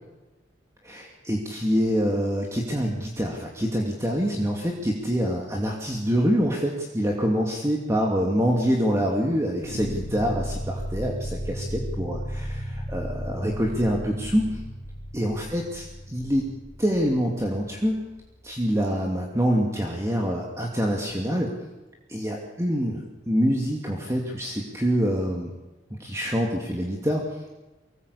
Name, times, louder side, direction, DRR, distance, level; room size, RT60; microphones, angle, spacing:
voice 1, 0.8-14.6 15.1-16.5 16.8-18.0 18.4-21.5 22.1-23.0 23.3-25.5 26.0-27.2, equal, 15° right, 0 dB, 2.6 m, -25 dB
sound 1, 9.6-18.7, equal, 70° left, 4.6 m, -35 dB
24.5 x 19.0 x 8.5 m, 1.1 s
head